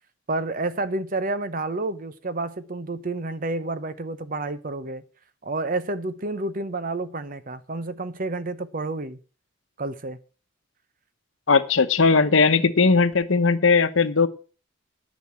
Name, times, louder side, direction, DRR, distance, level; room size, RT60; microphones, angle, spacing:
voice 1, 0.3-5.0 5.4-9.2 9.8-10.2, right 2 dB, 45° right, 0.8 m, -29 dB
voice 2, 11.5-14.3, left 4 dB, 70° left, 1.0 m, -18 dB
10.5 x 6.2 x 7.3 m
head